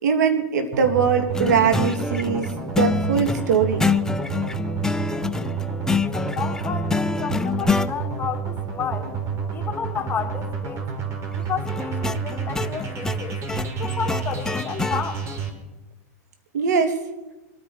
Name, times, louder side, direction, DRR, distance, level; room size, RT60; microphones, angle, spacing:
voice 1, 0.0-2.5 2.8-3.9 16.5-17.0, right 6 dB, 85° right, 6 dB, 2.8 m, -21 dB
sound 1, 0.7-15.5, right 6 dB, 30° right, 3.7 m, -30 dB
sound 2, 1.3-7.9 11.7-15.0, left 4 dB, 5° left, 0.6 m, -26 dB
voice 2, 6.1-9.1 9.5-10.8 11.3-13.4 13.8-15.2, left 7 dB, 20° left, 4 dB, 2.5 m, -31 dB
25.5 x 9.4 x 5.1 m, 1.0 s
hypercardioid pair, 125°, 9 cm